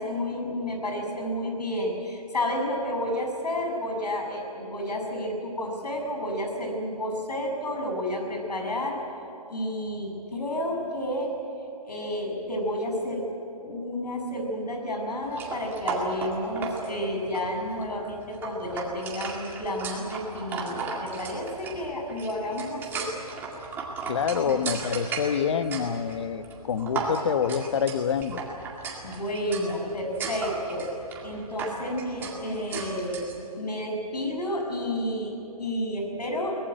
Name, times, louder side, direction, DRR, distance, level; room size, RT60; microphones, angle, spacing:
voice 1, 0.0-9.0 9.5-11.3 11.8-13.3 13.6-23.1 24.4-24.5 29.0-30.9 31.2-33.2 33.6-36.6, left 1 dB, 85° left, 3 dB, 7.1 m, -31 dB
sound 1, 15.3-33.4, right 4 dB, 10° right, 2.0 m, -36 dB
voice 2, 24.1-28.4, left 7 dB, 45° left, 11 dB, 1.1 m, -27 dB
23.0 x 19.0 x 9.1 m, 2.9 s
hypercardioid pair, 160°, 20 cm